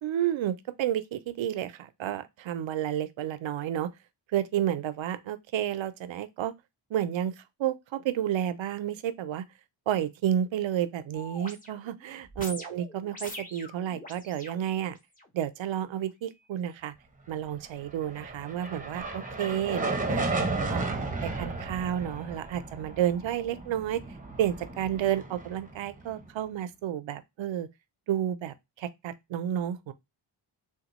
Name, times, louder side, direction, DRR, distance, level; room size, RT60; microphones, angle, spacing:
voice 1, 0.0-3.9 4.3-6.5 6.9-9.5 9.9-15.0 15.3-16.9 17.3-20.3 20.7-24.0 24.4-27.7 28.1-29.9, right 10 dB, 70° right, 0.5 m, -31 dB
sound 1, 11.1-15.3 15.9-16.0, left 1 dB, 15° left, 0.8 m, -44 dB
sound 2, 17.9-26.3, right 3 dB, 15° right, 0.7 m, -34 dB
3.6 x 2.3 x 2.9 m
cardioid pair, 85°, 48 cm